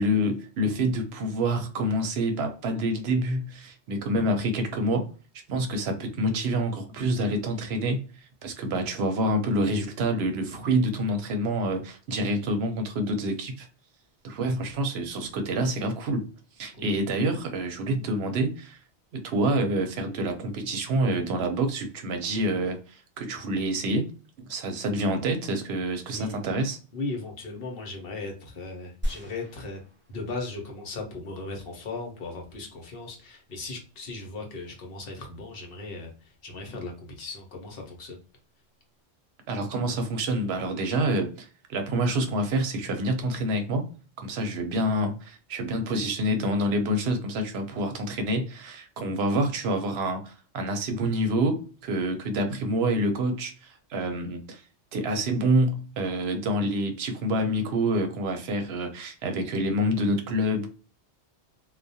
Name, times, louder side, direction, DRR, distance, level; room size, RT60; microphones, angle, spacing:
voice 1, 0.0-5.1 5.5-13.7 14.2-16.3 16.6-18.8 19.1-24.1 24.4-26.8 39.5-43.9 44.2-54.6 54.9-60.7, right 1 dB, 70° right, 0.8 m, -27 dB
voice 2, 26.1-26.4 26.9-29.8 30.1-36.1 36.4-38.2, left 3 dB, 60° left, 0.9 m, -37 dB
sound 1, 29.0-30.8 31.3-31.4, equal, 20° right, 0.3 m, -35 dB
2.3 x 2.1 x 2.6 m
omnidirectional pair, 1.2 m